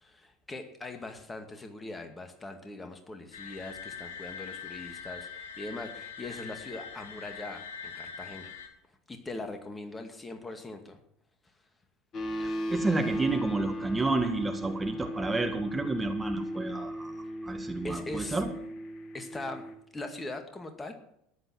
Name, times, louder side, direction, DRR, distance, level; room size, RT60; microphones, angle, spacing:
voice 1, 0.0-8.5 9.1-11.0 17.8-18.4 19.1-20.9, left 2 dB, 15° left, 6 dB, 2.2 m, -41 dB
sound 1, 3.3-8.7, left 6 dB, 60° left, 2.8 m, -43 dB
sound 2, 12.1-19.7, equal, 35° left, 2.0 m, -36 dB
voice 2, 12.2-17.1 17.4-18.5, right 3 dB, 15° right, 5 dB, 1.8 m, -30 dB
14.5 x 11.0 x 6.2 m, 0.74 s
figure-of-eight pair, 70°, 0 cm